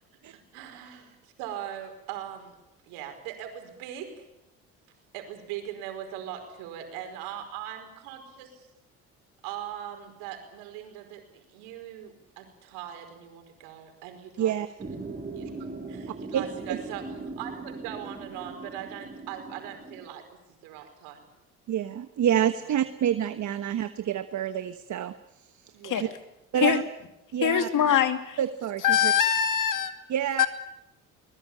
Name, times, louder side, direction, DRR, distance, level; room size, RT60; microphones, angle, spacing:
voice 1, 0.3-2.6 2.9-4.3 5.1-8.7 9.4-14.6 15.3-15.5 15.9-20.3 20.6-21.2 22.7-22.8 25.7-26.1, right 10 dB, 85° right, 6 dB, 5.1 m, -40 dB
sound 1, 14.8-20.1, right 3 dB, 25° right, 5.7 m, -40 dB
voice 2, 16.3-16.8 21.7-25.1 26.0-26.1 26.5-26.8 27.3-27.7 28.4-29.1 30.1-30.5, right 10 dB, 55° right, 10 dB, 1.3 m, -27 dB
voice 3, 27.4-28.4 28.8-29.9 30.4-30.5, left 9 dB, 60° left, 8 dB, 2.6 m, -23 dB
22.5 x 20.5 x 8.8 m, 0.89 s
supercardioid pair, 70°, 36 cm